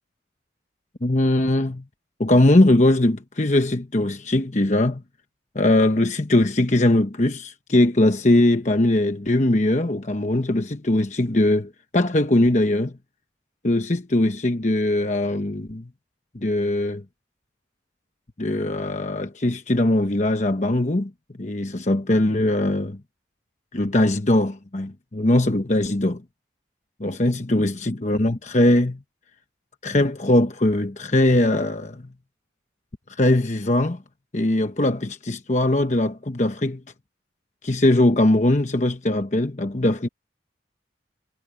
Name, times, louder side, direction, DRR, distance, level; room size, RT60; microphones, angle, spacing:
voice 1, 1.0-1.8 2.2-5.0 5.5-12.9 13.6-15.9 16.3-17.0 18.4-21.1 21.4-23.0 23.7-26.2 27.0-29.0 29.8-32.0 33.2-34.0 34.3-36.8 37.6-40.1, left 1 dB, 40° left, 1.0 m, -20 dB
head